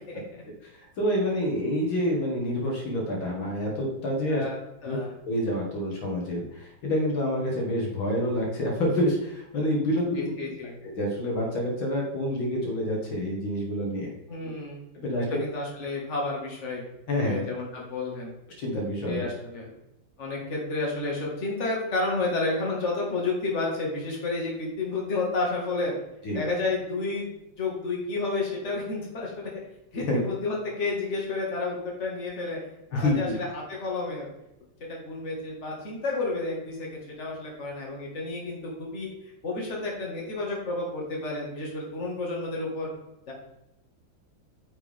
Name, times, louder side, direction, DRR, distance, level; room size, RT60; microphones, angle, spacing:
voice 1, 0.7-4.4 4.8-5.0 5.3-10.3 11.0-14.1 14.4-14.5 14.9-15.4 17.1-17.4 18.6-19.3 26.2-26.4 29.9-30.2 32.9-33.3, left 1 dB, 80° left, -1 dB, 2.6 m, -27 dB
voice 2, 4.8-5.1 10.2-10.7 14.3-14.8 15.3-16.8 17.3-18.3 19.1-19.8 20.2-25.9 26.3-29.5 29.9-32.6 32.9-34.3 34.9-42.9 43.3-43.4, left 3 dB, 35° left, -3 dB, 2.3 m, -31 dB
9.0 x 5.8 x 3.6 m, 0.88 s
omnidirectional pair, 2.2 m